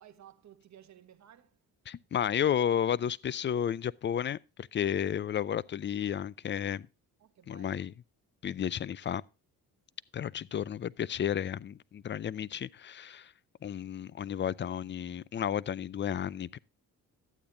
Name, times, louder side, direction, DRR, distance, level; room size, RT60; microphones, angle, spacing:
voice 1, 0.0-1.6 7.2-7.9, right 10 dB, 50° right, 1.2 m, -56 dB
voice 2, 1.9-6.9 7.5-7.9 8.4-9.2 10.1-13.3 13.6-16.6, left 9 dB, 30° left, 0.4 m, -32 dB
12.0 x 8.6 x 3.8 m
cardioid pair, 100°, 36 cm